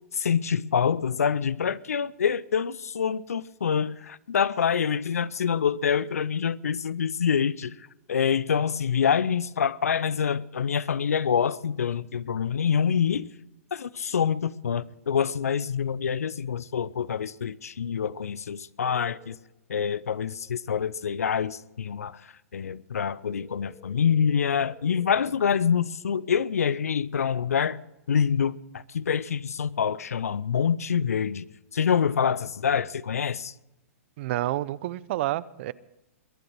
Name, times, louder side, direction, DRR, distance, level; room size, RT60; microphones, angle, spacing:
voice 1, 0.1-7.7 8.1-13.3 13.7-19.4 19.7-22.2 22.5-27.8 28.1-31.4 31.7-33.5, left 7 dB, 85° left, 0.6 m, -26 dB
sound 1, 18.8-19.4 23.3-25.2, left 4 dB, 10° left, 1.7 m, -52 dB
voice 2, 34.2-35.7, right 15 dB, 55° right, 0.6 m, -29 dB
22.0 x 7.9 x 6.4 m
hypercardioid pair, 120°, 8 cm